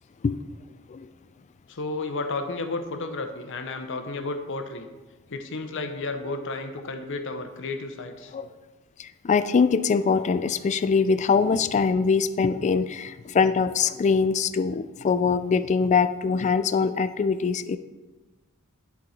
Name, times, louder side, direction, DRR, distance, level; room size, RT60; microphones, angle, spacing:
voice 1, 1.7-4.9 5.3-8.3, left 3 dB, 60° left, 7 dB, 0.8 m, -32 dB
voice 2, 9.0-17.8, left 5 dB, 35° left, 13 dB, 0.3 m, -23 dB
10.5 x 4.7 x 4.2 m, 1.2 s
head